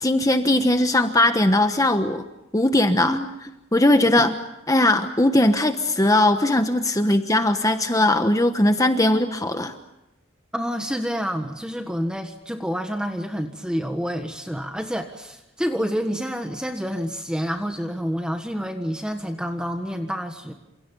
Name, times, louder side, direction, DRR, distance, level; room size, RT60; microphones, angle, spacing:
voice 1, 0.0-2.2 2.5-3.2 3.7-4.3 4.7-9.7, left 1 dB, 15° left, 7 dB, 1.2 m, -19 dB
voice 2, 4.0-4.3 10.5-20.6, equal, 5° right, 5 dB, 1.6 m, -28 dB
29.5 x 28.0 x 5.5 m, 0.92 s
head